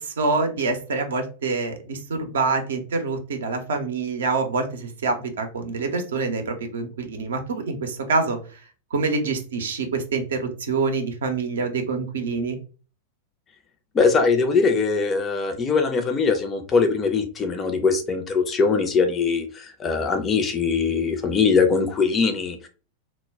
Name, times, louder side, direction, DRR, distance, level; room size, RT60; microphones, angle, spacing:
voice 1, 0.0-8.4 8.9-12.6, right 4 dB, 65° right, 6 dB, 0.6 m, -26 dB
voice 2, 13.9-22.7, left 4 dB, 25° left, 6 dB, 0.5 m, -21 dB
2.1 x 2.1 x 3.4 m, 0.36 s
figure-of-eight pair, 90°, 0 cm